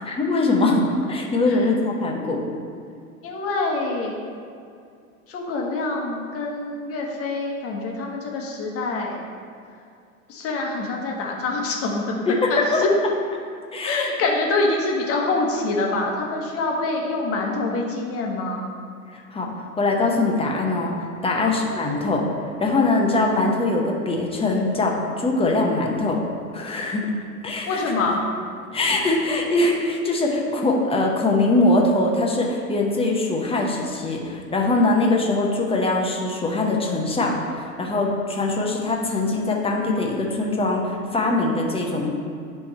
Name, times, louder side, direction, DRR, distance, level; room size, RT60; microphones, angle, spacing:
voice 1, 0.0-2.4 12.3-12.9 13.7-14.1 19.1-22.2 22.6-26.2 26.5-27.1 27.4-27.8 28.7-42.1, left 2 dB, 15° left, -1 dB, 1.0 m, -22 dB
voice 2, 3.2-4.1 5.3-9.2 10.3-12.9 13.8-18.6 21.3-21.5 27.7-28.2, left 3 dB, 35° left, -1 dB, 1.4 m, -25 dB
10.5 x 3.5 x 4.4 m, 2.3 s
figure-of-eight pair, 90°, 43 cm